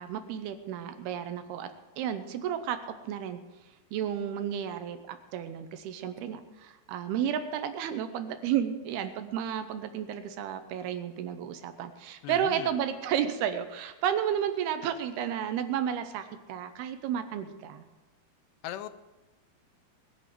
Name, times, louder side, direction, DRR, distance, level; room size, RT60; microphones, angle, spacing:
voice 1, 0.0-1.7 2.0-2.8 3.0-3.4 3.9-17.8, right 9 dB, 75° right, 9 dB, 2.7 m, -32 dB
voice 2, 12.2-12.8 18.6-18.9, left 13 dB, 85° left, 11 dB, 2.8 m, -39 dB
20.5 x 6.8 x 7.6 m, 1.1 s
omnidirectional pair, 4.8 m